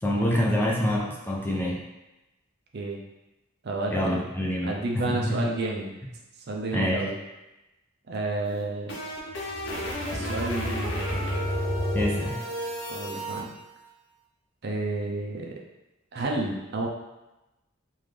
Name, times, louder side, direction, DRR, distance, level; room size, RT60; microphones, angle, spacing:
voice 1, 0.0-1.8 3.9-5.4 6.7-7.0 11.9-12.4, equal, 10° left, -3 dB, 0.5 m, -26 dB
voice 2, 3.6-4.3 4.6-6.0 6.5-7.2 8.1-9.0 10.1-11.0 12.9-13.5 14.6-15.6 16.1-16.9, right 2 dB, 55° right, 0 dB, 0.6 m, -31 dB
sound 1, 8.4-13.4, equal, 60° left, 0.7 m, -30 dB
3.8 x 2.5 x 3.2 m, 0.99 s
head